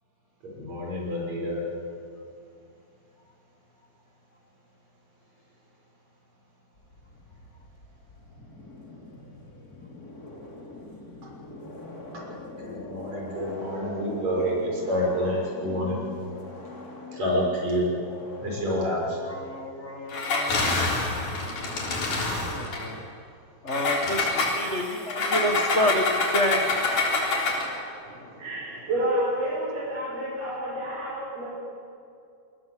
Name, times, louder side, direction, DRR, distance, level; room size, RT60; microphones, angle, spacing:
voice 1, 0.5-1.6 11.2-11.3 12.6-16.0 17.1-17.9 18.4-19.2, equal, 55° right, -2 dB, 7.6 m, -28 dB
sound 1, 6.8-20.2, left 2 dB, 30° left, 3.3 m, -42 dB
voice 2, 19.2-20.5 22.4-23.0 23.6-26.1 26.3-26.6, equal, 45° left, 3 dB, 0.9 m, -28 dB
Engine, 20.1-22.9 23.7-27.7, left 3 dB, 70° left, 5.2 m, -26 dB
voice 3, 28.1-31.5, right 1 dB, 85° right, -9 dB, 7.0 m, -29 dB
27.5 x 20.0 x 7.7 m, 2.5 s
omnidirectional pair, 3.7 m